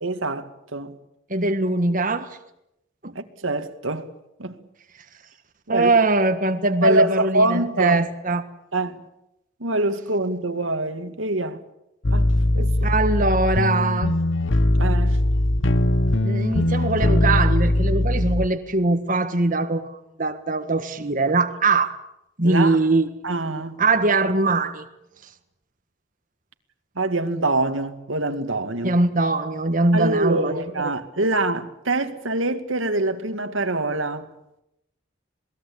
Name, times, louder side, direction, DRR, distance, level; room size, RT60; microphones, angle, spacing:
voice 1, 0.0-1.0 3.2-4.1 4.4-4.6 5.7-5.9 6.8-8.0 8.7-9.0 9.6-11.6 12.1-12.3 12.5-12.9 14.8-15.2 22.4-22.8 23.2-23.8 27.0-29.0 29.9-34.3, right 2 dB, 90° right, 2.2 m, -25 dB
voice 2, 1.3-2.4 3.0-3.1 5.7-8.4 12.8-14.2 16.2-21.9 22.4-23.1 23.8-24.8 28.8-30.5, right 2 dB, 45° right, 1.6 m, -21 dB
sound 1, 12.0-18.5, left 1 dB, 75° left, 1.2 m, -20 dB
27.5 x 20.0 x 8.7 m
head